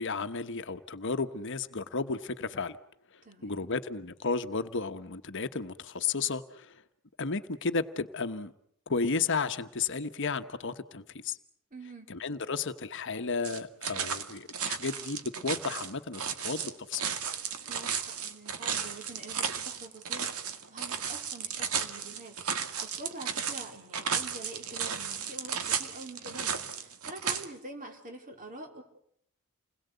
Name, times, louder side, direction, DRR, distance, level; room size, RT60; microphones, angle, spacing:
voice 1, 0.0-2.8 3.4-6.8 7.2-8.5 8.9-11.4 12.1-17.0, left 4 dB, 55° left, 9 dB, 1.1 m, -33 dB
voice 2, 3.2-3.7 11.7-12.1 17.7-28.8, right 2 dB, 40° right, 3 dB, 4.1 m, -46 dB
sound 1, 13.4-27.4, right 7 dB, 85° right, 2.0 m, -34 dB
29.0 x 21.0 x 8.0 m, 0.70 s
head